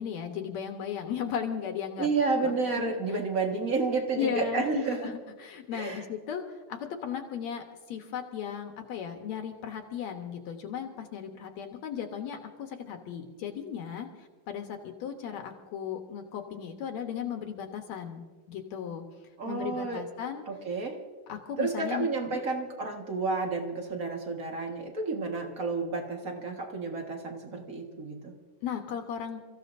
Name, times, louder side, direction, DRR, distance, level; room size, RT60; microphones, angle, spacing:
voice 1, 0.0-2.1 2.4-3.0 4.1-19.0 19.5-20.4 21.3-22.4 28.6-29.4, left 8 dB, 65° left, 4 dB, 2.2 m, -36 dB
voice 2, 2.0-5.0 5.7-6.0 19.4-20.0 20.5-21.0 21.6-28.3, right 3 dB, 40° right, 2 dB, 1.2 m, -31 dB
29.5 x 15.0 x 2.6 m, 1.4 s
omnidirectional pair, 3.6 m